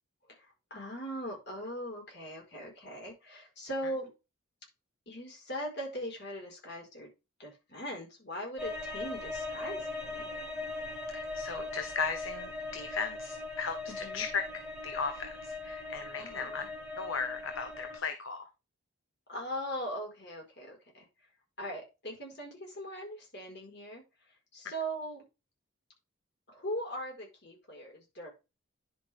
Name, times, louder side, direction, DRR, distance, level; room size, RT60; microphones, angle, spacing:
voice 1, 0.3-4.1 5.1-7.1 7.4-10.3 13.9-14.2 16.2-16.7 19.3-21.1 21.6-24.0 24.5-25.2 26.5-28.3, equal, 55° left, 1 dB, 4.6 m, -40 dB
sound 1, 8.6-18.0, left 2 dB, 5° right, 1.8 m, -40 dB
voice 2, 11.1-14.5 14.8-16.6 17.0-18.4, left 5 dB, 70° left, 7 dB, 1.0 m, -36 dB
10.5 x 5.7 x 3.4 m, 0.27 s
head